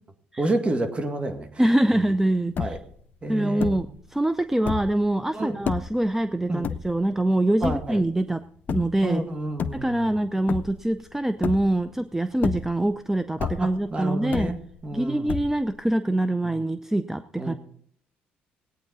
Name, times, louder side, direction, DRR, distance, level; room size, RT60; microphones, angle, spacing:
voice 1, 0.4-1.6 1.9-2.1 2.6-2.8 3.2-3.9 5.3-5.6 6.5-6.7 7.6-8.0 9.0-10.2 12.4-12.6 13.4-14.6 14.8-15.4 16.4-16.6 17.4-17.5, right 2 dB, 30° right, 5 dB, 1.9 m, -30 dB
voice 2, 1.6-2.8 3.3-8.4 8.7-9.2 9.7-14.6 14.9-17.5, right 1 dB, 10° right, 11 dB, 0.5 m, -24 dB
sound 1, 2.1-2.2 2.4-3.0 3.6-4.0 4.5-5.1 5.6-6.0 6.6-7.2 7.6-8.1 8.7-9.1 9.5-10.2 10.5-11.0 11.4-12.0 12.3-13.0 13.4-13.9 14.3-14.9 15.3-15.8, left 7 dB, 50° left, 0.7 m, -30 dB
18.5 x 9.1 x 4.0 m, 0.64 s
cardioid pair, 85°, 4 cm